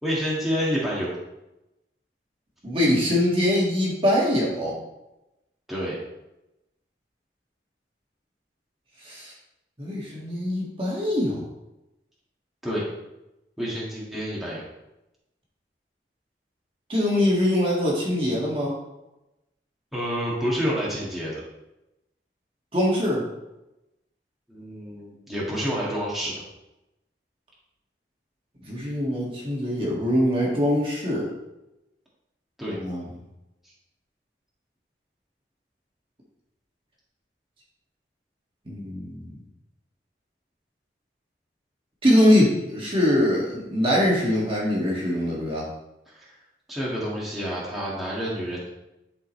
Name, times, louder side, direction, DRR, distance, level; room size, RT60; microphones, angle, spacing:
voice 1, 0.0-1.1 5.7-6.0 12.6-12.8 13.6-14.6 19.9-21.4 24.5-26.3 32.6-32.8 46.2-46.3 46.7-48.7, equal, ahead, -7 dB, 1.8 m, -28 dB
voice 2, 2.6-4.8 9.0-9.3 9.8-11.4 16.9-18.8 22.7-23.2 28.7-31.3 32.7-33.1 38.7-39.4 42.0-45.7, left 1 dB, 30° right, -4 dB, 1.8 m, -23 dB
11.0 x 5.2 x 3.2 m, 0.94 s
head